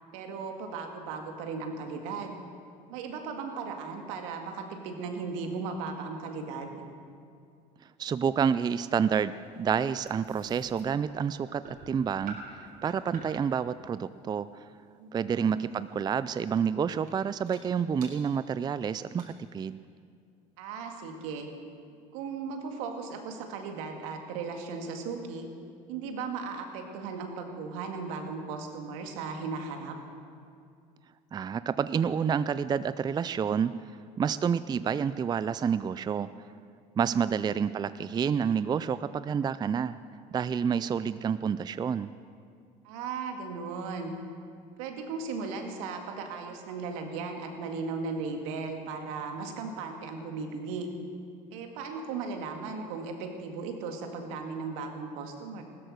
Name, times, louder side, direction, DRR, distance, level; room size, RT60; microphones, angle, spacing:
voice 1, 0.1-2.4 2.9-6.8 15.0-15.5 20.6-21.5 22.1-25.5 25.9-30.0 37.0-37.4 42.8-44.1 44.8-50.9 51.5-55.6, right 4 dB, 80° right, 4 dB, 2.0 m, -37 dB
voice 2, 8.0-9.3 9.6-14.7 15.1-19.8 31.3-33.7 34.2-36.3 37.0-40.0 40.3-42.1, right 7 dB, 25° right, 15 dB, 0.4 m, -29 dB
sound 1, 8.9-13.5 15.7-15.9 16.5-16.7 17.1-17.2 17.5-17.6 18.0-18.1 18.7-18.8 19.0-19.3, right 3 dB, 55° right, 3.8 m, -48 dB
15.5 x 13.0 x 6.4 m, 2.3 s
supercardioid pair, 85°, 17 cm